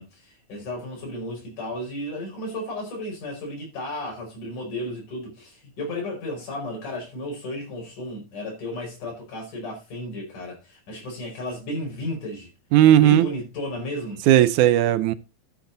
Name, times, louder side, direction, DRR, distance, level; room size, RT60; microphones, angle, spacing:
voice 1, 0.0-12.5 13.0-14.2, left 1 dB, 85° left, 6.5 m, -33 dB
voice 2, 12.7-13.3 14.3-15.1, right 12 dB, 80° right, 2.1 m, -16 dB
13.0 x 7.6 x 3.9 m
omnidirectional pair, 3.5 m